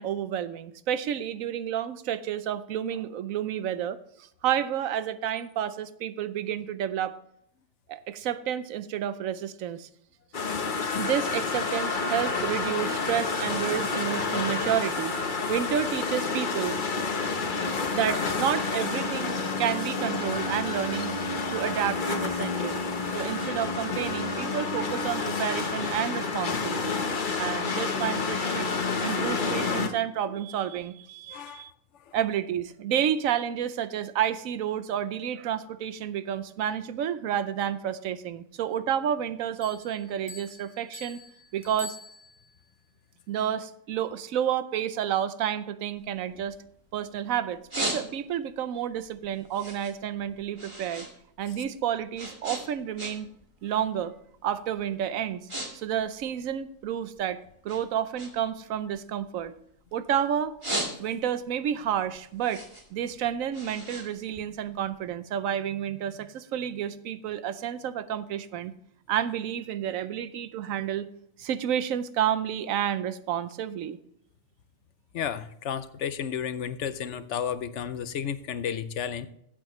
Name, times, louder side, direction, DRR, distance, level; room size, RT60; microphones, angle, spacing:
voice 1, 0.0-7.1 7.9-9.9 10.9-15.2 15.5-16.8 17.9-21.1 21.5-22.8 23.1-27.0 27.4-28.7 29.0-31.7 32.1-41.2 41.5-42.0 43.3-46.5 46.9-51.1 51.4-53.3 53.6-54.1 54.4-59.6 59.9-60.6 61.0-62.6 62.9-68.7 69.1-71.1 71.4-74.0, right 9 dB, 80° right, 13 dB, 1.1 m, -30 dB
sound 1, 10.3-29.9, left 4 dB, 40° left, 1.1 m, -29 dB
voice 2, 31.3-31.7 32.1-32.2 75.1-79.3, left 8 dB, 65° left, 13 dB, 0.9 m, -32 dB
Bell, 39.6-42.7, left 3 dB, 10° left, 1.1 m, -45 dB
sound 2, 46.0-47.1 47.4-48.5 48.9-51.1 51.4-53.4 53.7-54.1 54.7-54.8 55.2-55.7 55.9-57.2 57.7-60.0 60.4-61.4 61.8-65.0, right 1 dB, 20° right, 2.0 m, -36 dB
15.0 x 8.1 x 3.1 m, 0.73 s
omnidirectional pair, 1.4 m